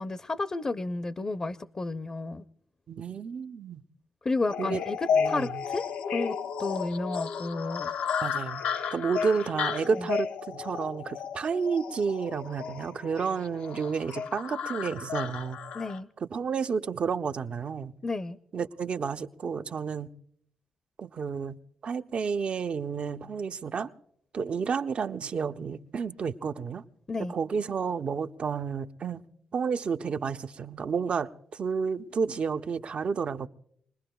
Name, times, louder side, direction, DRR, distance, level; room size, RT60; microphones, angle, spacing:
voice 1, 0.0-2.4 4.2-5.0 5.3-5.8 6.1-7.9 10.0-10.1 15.7-16.1 18.0-18.4 27.1-27.3, left 3 dB, 35° left, 0.6 m, -32 dB
voice 2, 2.9-3.8 4.6-4.8 5.1-5.7 8.2-8.6 8.9-15.6 16.2-17.9 18.5-20.1 21.0-21.6 21.8-23.9 24.3-26.8 27.2-29.2 29.5-33.5, right 5 dB, 55° right, 0.6 m, -31 dB
sound 1, 4.5-16.0, left 6 dB, 80° left, 0.6 m, -33 dB
26.5 x 20.5 x 2.3 m
hypercardioid pair, 45°, 2 cm